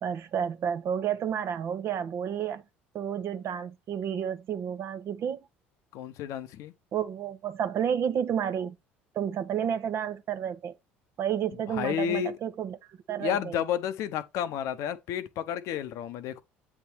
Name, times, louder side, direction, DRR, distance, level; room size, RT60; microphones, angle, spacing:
voice 1, 0.0-2.6 2.9-5.4 6.9-8.7 9.1-10.7 11.2-12.8 13.1-13.6, right 8 dB, 50° right, 0.9 m, -31 dB
voice 2, 5.9-6.7 11.7-12.3 13.2-16.4, left 9 dB, 60° left, 0.8 m, -31 dB
8.2 x 3.6 x 4.4 m
hypercardioid pair, 60°, 6 cm